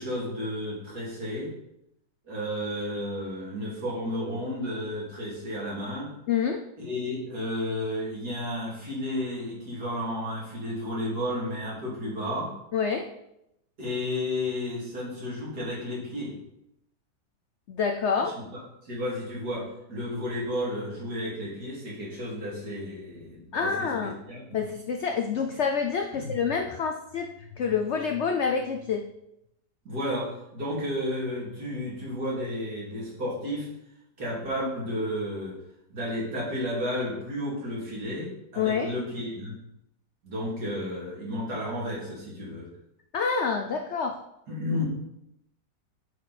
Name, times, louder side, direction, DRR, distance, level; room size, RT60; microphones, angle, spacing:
voice 1, 0.0-1.5 2.3-6.1 6.8-12.5 13.8-16.3 18.1-24.7 26.1-26.4 29.8-33.7 34.2-35.6 35.9-39.5 40.2-42.7 44.5-44.9, left 1 dB, 60° right, -5 dB, 3.0 m, -32 dB
voice 2, 6.3-6.6 12.7-13.0 17.7-18.3 23.5-24.2 24.5-29.1 38.6-38.9 43.1-44.2, left 6 dB, 80° left, 4 dB, 0.6 m, -27 dB
9.3 x 4.5 x 4.1 m, 0.82 s
omnidirectional pair, 1.9 m